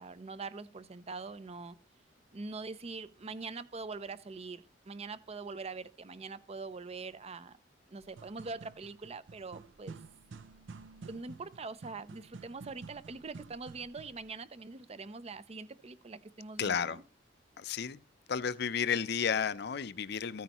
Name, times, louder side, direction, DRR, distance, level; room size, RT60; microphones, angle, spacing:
voice 1, 0.0-1.8 2.3-7.6 7.9-10.0 11.1-17.0, right 4 dB, 35° right, 0.5 m, -43 dB
sound 1, 8.0-14.3, right 4 dB, 80° right, 0.5 m, -51 dB
voice 2, 16.6-17.0 17.6-18.0 18.3-20.4, left 7 dB, 60° left, 0.5 m, -32 dB
14.0 x 9.4 x 3.0 m
head